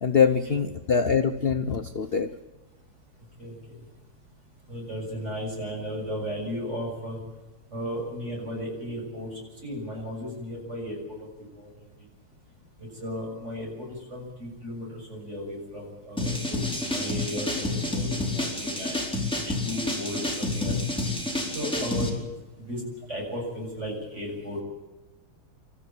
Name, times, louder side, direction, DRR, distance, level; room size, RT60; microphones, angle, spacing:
voice 1, 0.0-2.3, left 6 dB, 65° left, 6 dB, 0.6 m, -23 dB
voice 2, 3.4-3.8 4.7-7.2 7.7-11.0 11.5-11.7 12.8-19.0 19.4-20.8 21.5-22.1 22.6-22.8 23.1-24.6, equal, 30° right, -1 dB, 7.9 m, -35 dB
sound 1, 16.2-22.1, left 2 dB, ahead, 4.1 m, -29 dB
27.5 x 14.0 x 8.9 m, 1.1 s
omnidirectional pair, 2.3 m